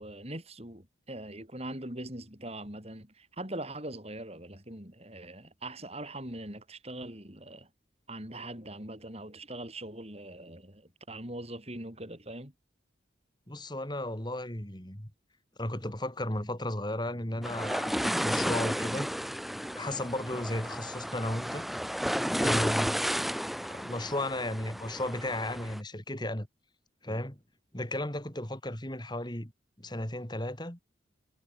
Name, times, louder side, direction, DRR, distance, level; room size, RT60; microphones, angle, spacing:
voice 1, 0.0-7.7 8.1-12.5, right 1 dB, 35° right, 5.5 m, -42 dB
voice 2, 13.5-15.1 15.6-19.1 19.8-21.7 22.3-23.1 23.7-26.5 27.0-27.4 27.7-29.5 29.8-30.8, left 1 dB, 25° left, 3.6 m, -34 dB
sound 1, 17.4-25.8, equal, ahead, 3.2 m, -32 dB
head